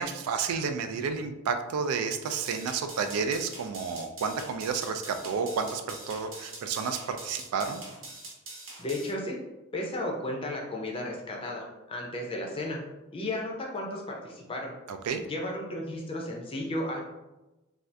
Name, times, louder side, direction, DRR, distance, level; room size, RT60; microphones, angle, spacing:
voice 1, 0.0-7.8 14.9-15.2, right 5 dB, 85° right, 8 dB, 0.3 m, -31 dB
sound 1, 2.2-9.1, right 2 dB, 60° right, 0.9 m, -44 dB
voice 2, 8.8-9.4 9.7-12.8 13.1-14.7 15.3-17.0, left 1 dB, 25° left, -1 dB, 0.4 m, -34 dB
2.6 x 2.3 x 3.3 m, 1.0 s
head